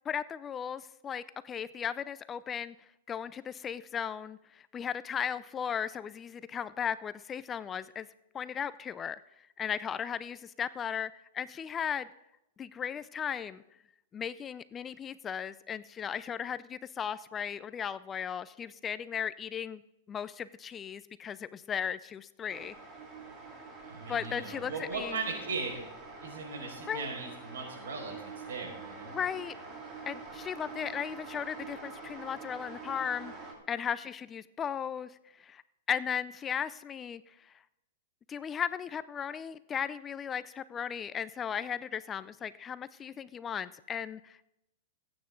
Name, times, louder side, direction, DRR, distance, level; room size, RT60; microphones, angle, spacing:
voice 1, 0.1-2.8 3.1-8.1 8.3-9.2 9.6-12.1 12.6-13.6 14.1-19.8 20.1-22.7 24.1-25.2 26.9-27.1 29.1-29.5 30.1-33.3 33.7-35.1 35.4-35.6 35.9-37.3 38.3-44.4, left 8 dB, 20° left, 16 dB, 0.4 m, -36 dB
sound 1, 22.5-33.5, right 4 dB, 25° right, 2.8 m, -46 dB
voice 2, 23.9-25.8 26.2-28.1 28.5-29.2, right 4 dB, 80° right, 1 dB, 5.4 m, -38 dB
21.0 x 8.8 x 3.9 m, 0.86 s
hypercardioid pair, 135°, 0 cm